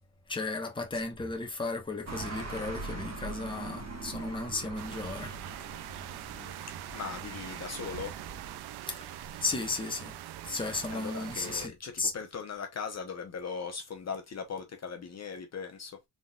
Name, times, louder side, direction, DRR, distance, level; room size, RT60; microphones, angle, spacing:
voice 1, 0.3-5.4 8.9-10.2 10.4-12.1, left 3 dB, 10° left, 1.0 m, -35 dB
sound 1, 2.1-8.6, right 3 dB, 40° right, 1.4 m, -42 dB
sound 2, 4.8-11.7, right 13 dB, 80° right, 0.5 m, -43 dB
voice 2, 6.1-6.5 6.9-8.2 10.9-16.0, left 6 dB, 40° left, 0.9 m, -39 dB
3.8 x 3.8 x 2.3 m
cardioid pair, 120°, 39 cm